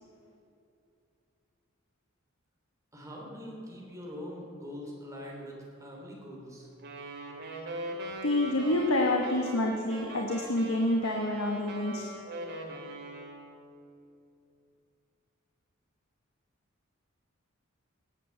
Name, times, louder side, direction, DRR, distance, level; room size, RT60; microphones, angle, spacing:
voice 1, 2.9-6.7, equal, 15° right, -2 dB, 3.5 m, -43 dB
sound 1, 6.8-13.6, right 2 dB, 55° right, 2.3 m, -41 dB
voice 2, 8.2-12.1, left 1 dB, 75° left, 2 dB, 1.2 m, -28 dB
18.0 x 8.6 x 6.8 m, 2.6 s
head